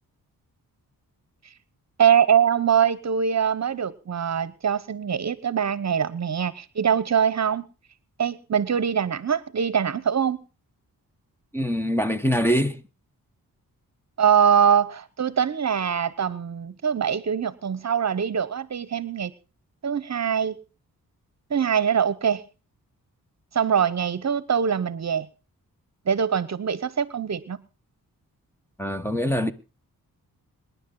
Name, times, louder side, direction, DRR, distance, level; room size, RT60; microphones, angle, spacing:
voice 1, 2.0-7.7 8.2-10.4 14.2-19.3 19.8-20.6 21.5-22.4 23.5-25.3 26.1-27.6, right 8 dB, 50° right, 1.0 m, -23 dB
voice 2, 11.5-12.8 28.8-29.5, equal, 5° left, 1.1 m, -23 dB
26.5 x 10.5 x 3.9 m
cardioid pair, 90°, 36 cm